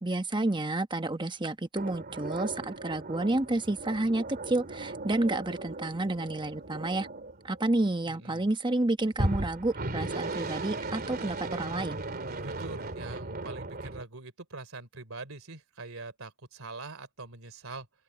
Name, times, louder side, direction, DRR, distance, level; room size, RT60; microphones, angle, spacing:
voice 1, 0.0-7.1 7.4-12.0, right 2 dB, 20° right, 1.1 m, -30 dB
sound 1, 1.8-8.1 9.1-14.0, right 2 dB, 45° right, 2.8 m, -37 dB
voice 2, 8.1-8.5 12.4-17.9, right 3 dB, 65° right, 3.5 m, -43 dB
open air
head